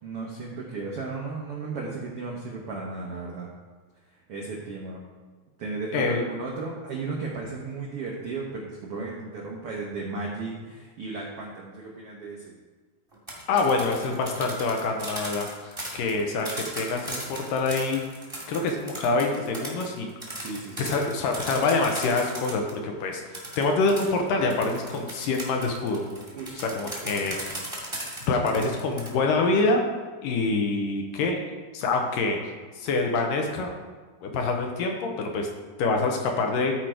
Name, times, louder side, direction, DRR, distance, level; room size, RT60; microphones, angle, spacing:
voice 1, 0.0-3.5 4.3-5.0 5.6-12.5 20.3-20.8 26.3-27.2, right 3 dB, 80° right, -3 dB, 1.3 m, -35 dB
voice 2, 5.9-6.2 13.5-18.1 18.5-20.1 20.4-20.5 20.8-26.0 26.6-27.5 28.3-29.8 30.2-31.4 31.7-32.4 32.8-33.7 34.2-35.5 35.8-36.7, left 3 dB, 75° left, 2 dB, 2.4 m, -26 dB
sound 1, 13.1-22.8 23.3-29.1, right 1 dB, 10° right, 1.2 m, -37 dB
12.5 x 5.0 x 4.5 m, 1.4 s
omnidirectional pair, 4.2 m